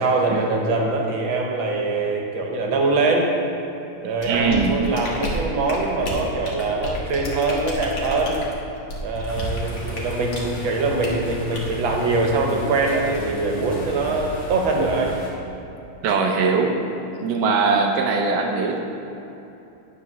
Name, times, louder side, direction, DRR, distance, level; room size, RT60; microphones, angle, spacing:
voice 1, 0.0-3.3 4.0-8.4 9.0-15.1 16.1-16.2, right 3 dB, 85° right, 0 dB, 1.9 m, -23 dB
sound 1, 4.2-10.5 11.0-11.2 11.5-11.8, equal, 55° left, 1.8 m, -31 dB
voice 2, 4.2-4.7 16.0-16.8 17.2-18.8, right 4 dB, 70° right, 1 dB, 1.3 m, -21 dB
sound 2, 9.3-15.3, left 1 dB, 75° left, 2.6 m, -35 dB
9.8 x 5.0 x 6.0 m, 2.9 s
omnidirectional pair, 2.1 m